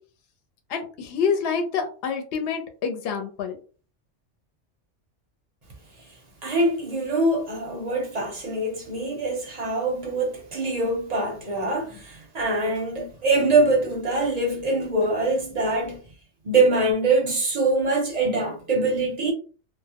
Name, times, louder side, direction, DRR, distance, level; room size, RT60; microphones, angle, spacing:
voice 1, 0.7-3.6, left 6 dB, 65° left, 0.7 m, -27 dB
voice 2, 6.4-16.0 16.4-19.3, right 2 dB, 45° right, 0.6 m, -24 dB
2.2 x 2.0 x 2.7 m
omnidirectional pair, 1.2 m